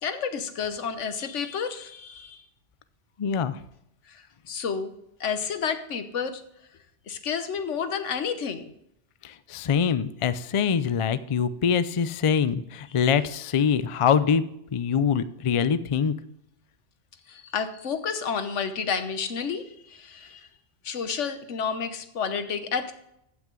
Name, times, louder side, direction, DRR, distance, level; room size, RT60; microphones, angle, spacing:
voice 1, 0.0-2.4 4.1-4.9 5.2-6.4 7.1-8.7 12.9-13.1 17.3-20.5 20.8-22.9, left 6 dB, 85° left, 9 dB, 1.3 m, -30 dB
voice 2, 3.2-3.6 9.2-14.4 14.7-16.1, left 7 dB, 55° left, 14 dB, 0.3 m, -24 dB
15.0 x 6.0 x 3.8 m, 0.77 s
omnidirectional pair, 1.2 m